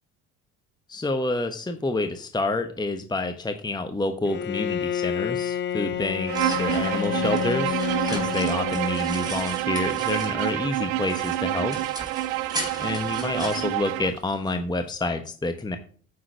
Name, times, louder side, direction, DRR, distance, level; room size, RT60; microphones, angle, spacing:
voice 1, 0.9-11.8 12.8-15.8, left 2 dB, 10° left, 7 dB, 1.0 m, -28 dB
Bowed string instrument, 4.2-9.7, left 10 dB, 30° left, 0.4 m, -30 dB
sound 1, 5.9-10.6 11.0-14.5, right 1 dB, 10° right, 4.1 m, -38 dB
Bowed string instrument 2, 6.3-14.2, right 16 dB, 75° right, 0.6 m, -28 dB
9.6 x 6.3 x 4.6 m, 0.43 s
hypercardioid pair, 60°, 42 cm